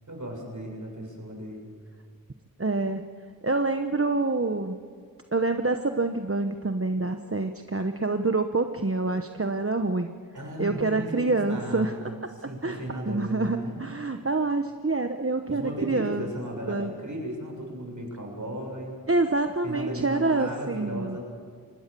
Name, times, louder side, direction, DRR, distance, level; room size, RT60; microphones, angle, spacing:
voice 1, 0.1-1.7 10.3-13.8 15.5-19.0 19.6-21.2, right 1 dB, 60° right, 1 dB, 7.2 m, -35 dB
voice 2, 2.6-3.1 3.4-4.8 5.3-10.1 10.6-11.9 12.6-12.8 13.1-16.3 16.7-16.9 19.1-21.2, right 3 dB, 40° right, 7 dB, 1.1 m, -26 dB
25.5 x 20.0 x 6.9 m, 2.2 s
wide cardioid pair, 45°, 34 cm